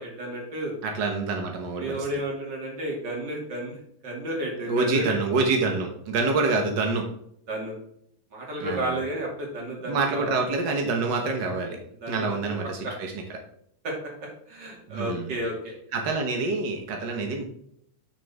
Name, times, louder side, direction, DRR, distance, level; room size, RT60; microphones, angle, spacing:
voice 1, 0.0-0.7 1.8-5.2 7.5-7.7 8.3-10.3 12.0-12.5 12.8-12.9 13.8-13.9 14.2-15.7, right 1 dB, 35° right, -1 dB, 2.7 m, -32 dB
voice 2, 0.8-2.1 4.7-7.0 8.6-9.0 9.9-11.8 12.1-13.1 14.9-15.4 15.9-17.4, right 3 dB, 70° right, 3 dB, 1.0 m, -26 dB
8.7 x 6.4 x 3.5 m, 0.70 s
omnidirectional pair, 3.7 m